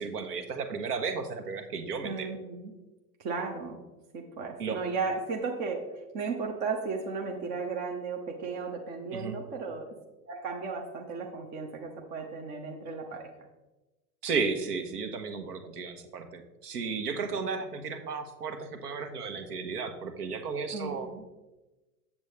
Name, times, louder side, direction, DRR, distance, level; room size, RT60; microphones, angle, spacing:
voice 1, 0.0-2.3 4.6-4.8 9.1-9.4 14.2-21.1, right 5 dB, 70° right, 8 dB, 1.1 m, -34 dB
voice 2, 2.0-2.7 3.2-3.8 4.1-9.9 10.3-13.3 20.7-21.2, right 4 dB, 15° right, 1 dB, 0.3 m, -35 dB
7.3 x 7.2 x 3.2 m, 1.1 s
figure-of-eight pair, 90°, 48 cm